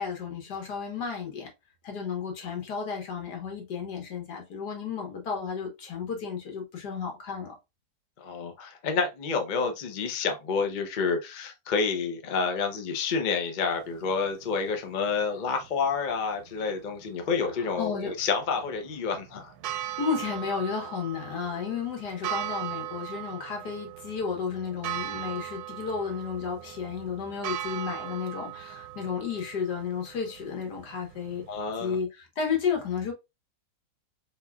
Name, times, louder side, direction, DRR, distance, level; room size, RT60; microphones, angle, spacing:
voice 1, 0.0-1.5 1.8-7.6 17.5-18.1 20.0-31.4 31.8-33.1, left 6 dB, 75° left, 1.9 m, -33 dB
voice 2, 8.2-19.5 31.5-32.0, left 5 dB, 45° left, 0.6 m, -29 dB
sound 1, 13.7-31.8, right 13 dB, 75° right, 1.1 m, -40 dB
4.2 x 3.8 x 2.3 m
omnidirectional pair, 1.8 m